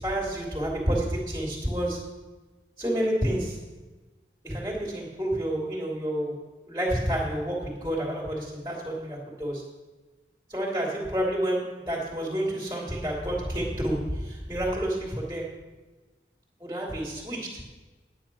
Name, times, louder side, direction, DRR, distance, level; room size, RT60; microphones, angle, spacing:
voice 1, 0.0-2.0 2.8-3.6 4.4-9.6 10.5-15.6 16.6-17.7, right 1 dB, 15° right, -3 dB, 2.5 m, -29 dB
9.9 x 9.8 x 6.0 m, 1.2 s
head